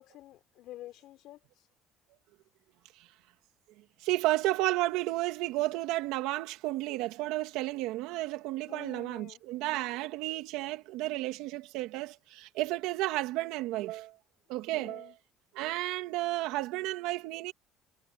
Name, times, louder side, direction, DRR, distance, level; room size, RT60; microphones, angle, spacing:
voice 1, 0.0-1.7 8.7-9.4 14.7-15.2, left 15 dB, 70° left, 4.6 m, -49 dB
voice 2, 4.0-14.1 14.5-15.1 15.5-17.5, right 17 dB, 85° right, 2.4 m, -32 dB
cardioid pair, 110°, 0 cm